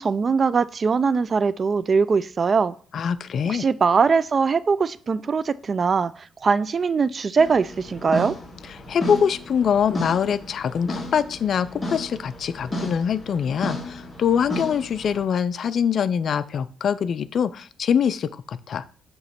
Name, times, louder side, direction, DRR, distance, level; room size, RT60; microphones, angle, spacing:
voice 1, 0.0-2.7 3.5-8.4, right 5 dB, 40° right, 17 dB, 0.3 m, -21 dB
voice 2, 2.9-3.6 8.9-18.9, left 7 dB, 60° left, 15 dB, 0.4 m, -24 dB
sound 1, 7.4-15.2, left 1 dB, 25° left, 1.9 m, -34 dB
7.8 x 3.0 x 5.7 m, 0.43 s
cardioid pair, 90°, 0 cm